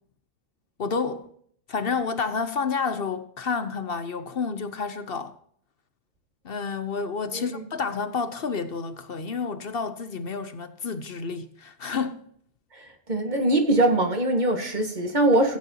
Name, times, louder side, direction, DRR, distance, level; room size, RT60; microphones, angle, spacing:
voice 1, 0.8-1.3 1.7-5.3 6.4-12.2, left 5 dB, 50° left, 0.9 m, -30 dB
voice 2, 7.3-7.6 13.1-15.6, right 1 dB, 35° right, 1.7 m, -22 dB
15.5 x 9.7 x 2.8 m
omnidirectional pair, 1.4 m